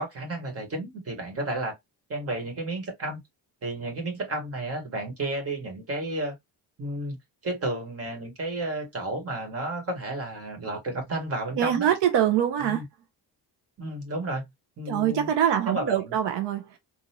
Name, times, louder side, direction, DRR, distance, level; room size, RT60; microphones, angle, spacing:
voice 1, 0.0-1.7 2.1-3.2 3.6-6.3 6.8-7.2 7.4-11.9 12.6-12.8 13.8-14.4 14.8-15.3 15.7-16.1, right 2 dB, 35° right, 1.7 m, -32 dB
voice 2, 11.6-12.8 14.9-16.8, right 10 dB, 85° right, 0.7 m, -24 dB
3.9 x 2.5 x 2.9 m
cardioid pair, 135°, 40 cm